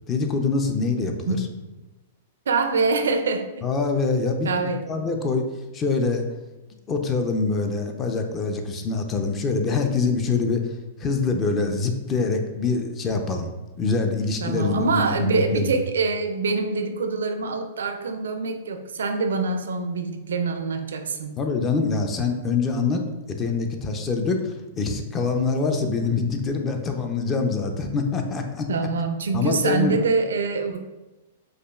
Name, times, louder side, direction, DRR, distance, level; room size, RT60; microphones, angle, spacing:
voice 1, 0.1-1.4 3.6-5.4 5.7-6.2 6.9-13.5 13.8-15.7 21.4-23.0 23.4-28.7 29.3-29.9, left 4 dB, 25° left, 4 dB, 0.5 m, -25 dB
voice 2, 2.5-3.5 4.4-4.8 14.4-21.3 28.7-30.8, right 4 dB, 80° right, 7 dB, 0.4 m, -25 dB
4.9 x 2.4 x 2.3 m, 1.1 s
hypercardioid pair, 120°, 0 cm